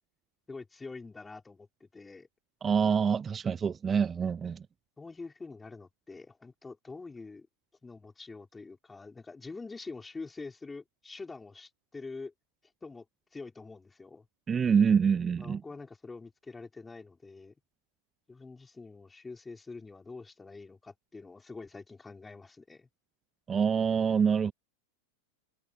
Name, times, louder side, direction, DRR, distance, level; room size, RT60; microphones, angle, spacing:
voice 1, 0.5-2.3 5.0-7.5 7.8-12.3 12.8-13.1 13.3-14.3 15.4-17.5 18.3-22.9, left 3 dB, 10° left, 5.5 m, -45 dB
voice 2, 2.6-4.6 14.5-15.6 23.5-24.5, right 6 dB, 20° right, 0.8 m, -26 dB
figure-of-eight pair, 90°, 0 cm